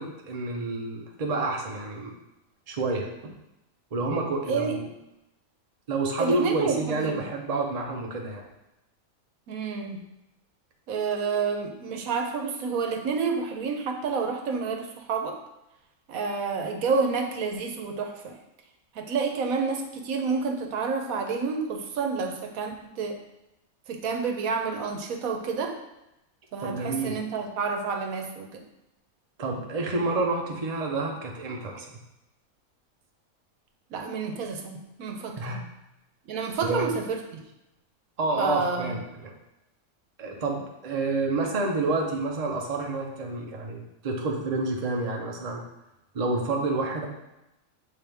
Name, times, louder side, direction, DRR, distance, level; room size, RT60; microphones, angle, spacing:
voice 1, 0.0-2.1 2.7-3.1 3.9-4.9 5.9-8.4 26.6-27.2 29.4-32.0 35.4-35.6 36.7-36.9 38.2-39.3 40.2-45.6 46.1-47.0, right 3 dB, 35° right, 1 dB, 0.7 m, -29 dB
voice 2, 4.5-4.8 6.2-7.2 9.5-10.0 10.9-15.4 16.1-18.4 18.9-23.2 23.9-25.8 26.5-28.6 33.9-35.7 36.3-37.4 38.4-39.0, right 5 dB, 80° right, 3 dB, 1.2 m, -29 dB
7.5 x 3.7 x 3.4 m, 0.91 s
omnidirectional pair, 1.5 m